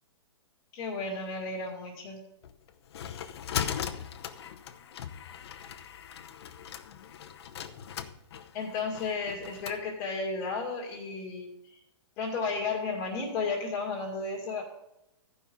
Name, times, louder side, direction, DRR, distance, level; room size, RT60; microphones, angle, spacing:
voice 1, 0.7-2.2 8.5-11.8 12.2-14.6, left 4 dB, 30° left, -2 dB, 2.3 m, -33 dB
sound 1, 2.4-9.8, left 9 dB, 60° left, 0.9 m, -39 dB
14.5 x 5.5 x 5.2 m, 0.84 s
hypercardioid pair, 160°, 15 cm